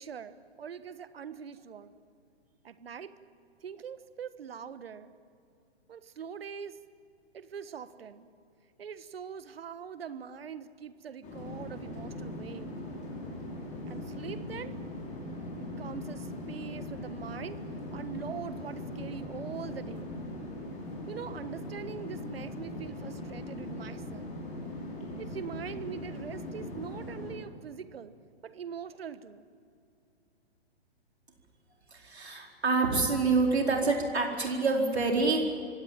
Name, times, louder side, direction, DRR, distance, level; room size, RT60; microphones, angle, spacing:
voice 1, 0.0-1.9 2.6-3.1 3.6-5.1 5.9-6.8 7.3-8.3 8.8-12.7 13.9-14.7 15.8-17.6 17.9-20.1 21.1-24.3 25.2-28.1 28.4-29.4, right 7 dB, 65° right, 13 dB, 1.4 m, -42 dB
sound 1, 11.2-27.3, left 1 dB, 25° left, 5.8 m, -40 dB
voice 2, 31.9-35.4, right 3 dB, 80° right, 1 dB, 4.5 m, -27 dB
25.5 x 17.0 x 9.0 m, 2.4 s
figure-of-eight pair, 120°, 32 cm